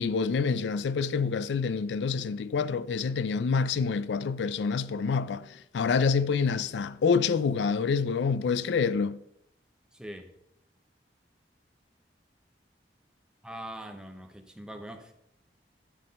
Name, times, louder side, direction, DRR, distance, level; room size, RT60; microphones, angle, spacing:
voice 1, 0.0-9.2, left 5 dB, 75° left, 0.4 m, -27 dB
voice 2, 9.9-10.3 13.4-15.1, right 1 dB, 5° right, 0.7 m, -42 dB
10.0 x 3.7 x 5.3 m
head